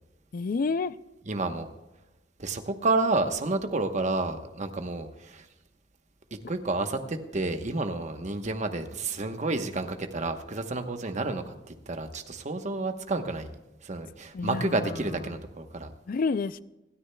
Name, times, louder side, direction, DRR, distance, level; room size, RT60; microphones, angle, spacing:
voice 1, 0.3-1.0 14.3-15.4 16.1-16.6, left 4 dB, 50° left, 16 dB, 0.4 m, -30 dB
voice 2, 1.3-1.7 2.4-5.5 6.5-13.5 13.8-15.9, right 2 dB, 40° right, 7 dB, 1.0 m, -30 dB
26.5 x 9.9 x 2.3 m, 1.0 s
head